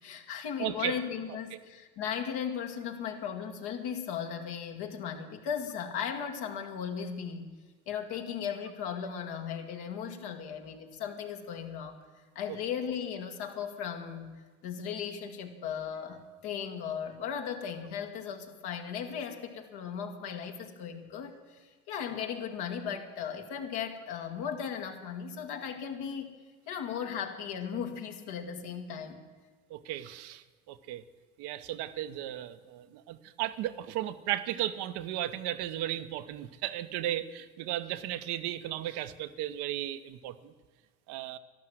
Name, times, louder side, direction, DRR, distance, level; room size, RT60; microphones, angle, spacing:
voice 1, 0.0-7.6 7.9-12.0 12.4-26.4 26.7-29.3, left 7 dB, 70° left, 4 dB, 1.9 m, -37 dB
voice 2, 0.6-1.0 29.7-31.0 31.4-40.5 41.1-41.4, right 13 dB, 70° right, 10 dB, 0.9 m, -35 dB
12.0 x 12.0 x 7.8 m, 1.4 s
supercardioid pair, 75°, 40 cm